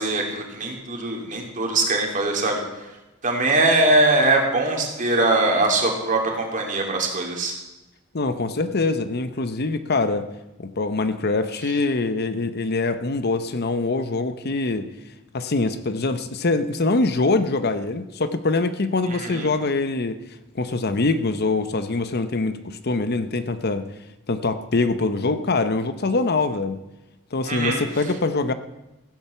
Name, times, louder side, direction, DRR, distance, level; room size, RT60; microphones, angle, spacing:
voice 1, 0.0-2.6 3.2-7.5 19.1-19.5 27.4-27.8, right 2 dB, 40° right, 1 dB, 2.9 m, -22 dB
voice 2, 8.1-10.3 10.6-14.9 15.3-20.2 20.6-23.9 24.3-26.8 27.3-28.5, left 3 dB, 55° left, 11 dB, 0.8 m, -24 dB
15.0 x 8.9 x 7.0 m, 1.0 s
head